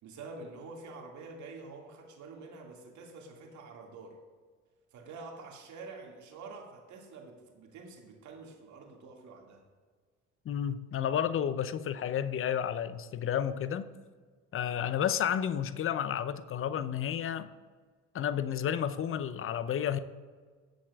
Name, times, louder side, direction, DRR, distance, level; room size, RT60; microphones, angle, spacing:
voice 1, 0.0-4.2 4.9-9.6, right 3 dB, 50° right, 1 dB, 2.2 m, -47 dB
voice 2, 10.4-13.8 14.5-17.5 18.1-20.0, left 9 dB, 35° left, 13 dB, 0.7 m, -31 dB
18.0 x 7.7 x 2.4 m, 1.5 s
figure-of-eight pair, 55°, 37 cm